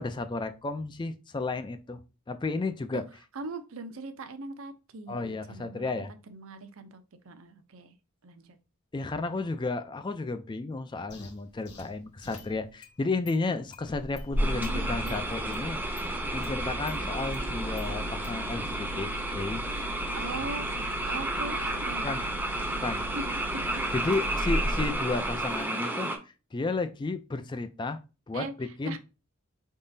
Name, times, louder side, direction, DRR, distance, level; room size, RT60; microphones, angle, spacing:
voice 1, 0.0-2.0 2.3-3.0 5.1-6.1 8.9-15.8 16.3-19.6 20.0-20.1 22.0-22.2 22.8-23.0 23.9-28.0 28.3-29.0, left 3 dB, 20° left, 10 dB, 0.3 m, -33 dB
voice 2, 3.3-7.9 8.2-8.6 14.4-15.2 20.1-23.9 28.3-29.0, right 3 dB, 65° right, 9 dB, 0.6 m, -41 dB
sound 1, 11.1-12.6, left 1 dB, 50° left, 1.0 m, -49 dB
Engine starting, 11.8-11.9 12.3-12.9 13.3-13.4 13.7-25.6, equal, 75° left, 0.9 m, -36 dB
sound 2, 14.4-26.2, right 1 dB, 10° right, 0.6 m, -32 dB
4.8 x 3.7 x 2.6 m, 0.30 s
head